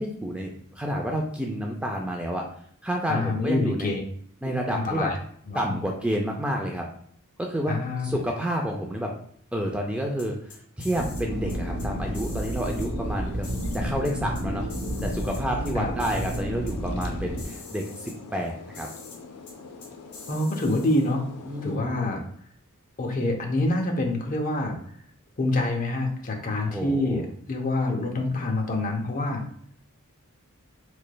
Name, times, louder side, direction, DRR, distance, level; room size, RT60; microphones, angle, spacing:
voice 1, 0.0-2.4 2.8-4.0 4.4-5.1 5.5-6.8 7.4-7.8 8.0-9.1 9.5-13.5 13.7-14.7 15.0-18.9 21.5-22.0 26.7-27.3, equal, 5° right, 0 dB, 0.3 m, -29 dB
voice 2, 3.1-4.0 4.7-5.2 5.5-5.8 7.7-8.2 15.7-15.9 20.3-21.2 21.6-22.2 23.0-24.8 25.4-29.4, left 2 dB, 40° left, 2 dB, 0.6 m, -26 dB
sound 1, 10.2-11.2 11.5-11.9 12.1-12.9 13.4-14.4 14.7-15.7 16.0-16.4 16.7-16.8 17.0-17.1 17.4-18.1 18.7-19.2 19.5-19.6 19.8-21.1, left 4 dB, 55° left, 1.3 m, -45 dB
sound 2, 10.9-17.5, equal, 75° right, 0.8 m, -31 dB
sound 3, 11.2-21.8, left 4 dB, 85° left, 0.5 m, -44 dB
3.9 x 3.2 x 2.2 m, 0.62 s
head